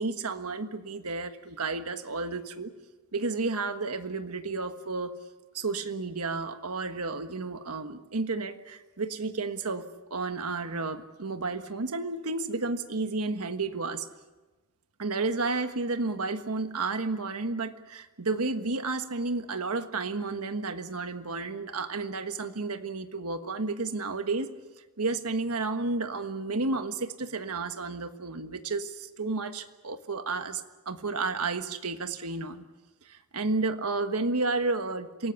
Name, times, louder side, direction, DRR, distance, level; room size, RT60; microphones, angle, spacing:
voice 1, 0.0-2.7 3.1-5.1 5.5-9.8 10.1-14.0 15.0-24.5 25.0-32.6 33.0-35.3, right 3 dB, 85° right, 8 dB, 1.4 m, -31 dB
27.5 x 18.5 x 7.1 m, 1.2 s
head